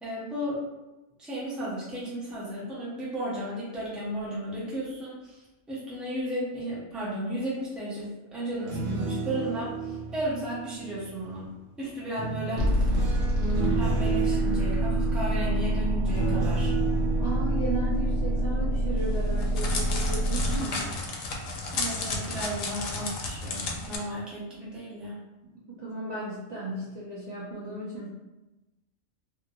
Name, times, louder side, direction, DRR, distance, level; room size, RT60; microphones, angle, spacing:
voice 1, 0.0-0.6 1.2-5.4 5.7-11.5 11.8-16.7 21.7-25.2, right 1 dB, ahead, -8 dB, 0.7 m, -34 dB
sound 1, 8.5-11.4 12.2-19.1 19.5-19.8, right 5 dB, 90° right, 1.1 m, -33 dB
sound 2, 12.6-20.6, equal, 70° right, 1.2 m, -26 dB
voice 2, 17.2-21.0 25.8-28.1, right 1 dB, 40° right, -9 dB, 0.6 m, -35 dB
Crackle, 19.0-24.0, left 3 dB, 85° left, 1.0 m, -33 dB
2.7 x 2.6 x 2.7 m, 1.0 s
omnidirectional pair, 1.3 m